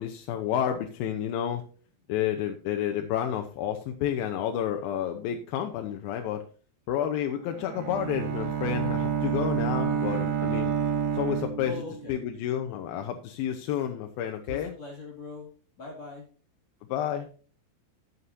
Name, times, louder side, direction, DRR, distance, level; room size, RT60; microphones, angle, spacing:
voice 1, 0.0-1.6 2.1-6.4 6.9-10.7 11.1-11.8 12.1-14.7 16.9-17.3, left 10 dB, 85° left, 4 dB, 2.6 m, -30 dB
Bowed string instrument, 7.5-12.2, right 8 dB, 90° right, 3.7 m, -29 dB
voice 2, 11.6-12.2 14.5-15.5 15.8-16.3, left 2 dB, 45° left, 0 dB, 3.3 m, -41 dB
12.5 x 9.5 x 2.7 m, 0.39 s
omnidirectional pair, 4.3 m